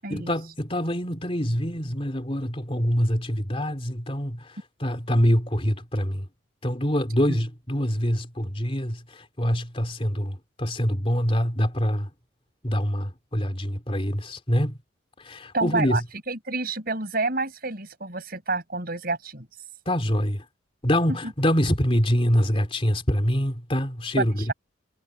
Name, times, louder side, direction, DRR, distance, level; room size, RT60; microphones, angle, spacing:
voice 1, 0.1-6.2 6.6-12.1 12.6-14.8 15.2-16.0 19.8-20.4 20.8-24.5, equal, 30° left, 3.3 m, -25 dB
voice 2, 15.5-16.0 16.3-19.5 24.2-24.5, right 3 dB, 50° right, 6.9 m, -28 dB
head